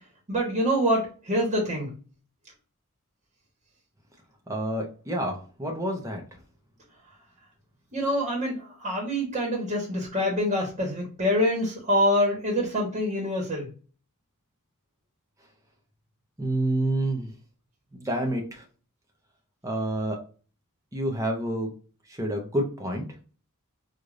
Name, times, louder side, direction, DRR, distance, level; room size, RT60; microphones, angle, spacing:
voice 1, 0.3-1.9 7.9-13.7, equal, 30° right, -2 dB, 1.3 m, -25 dB
voice 2, 4.5-6.2 16.4-17.3 17.9-18.6 19.6-20.2 20.9-21.7 22.1-23.0, right 1 dB, 15° right, 1 dB, 0.8 m, -28 dB
4.8 x 2.6 x 2.5 m, 0.38 s
head